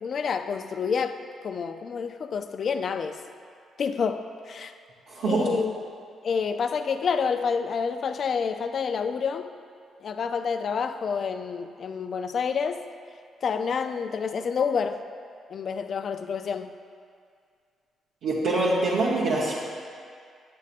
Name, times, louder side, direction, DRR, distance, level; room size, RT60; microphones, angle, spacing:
voice 1, 0.0-3.2 3.8-4.7 5.2-5.8 6.2-9.5 10.0-12.8 13.4-15.0 15.5-16.7, left 6 dB, 55° left, 8 dB, 0.4 m, -28 dB
voice 2, 5.1-5.5 18.2-19.5, right 2 dB, 80° right, -7 dB, 1.0 m, -24 dB
8.4 x 8.2 x 2.5 m, 2.2 s
cardioid pair, 75°, 0 cm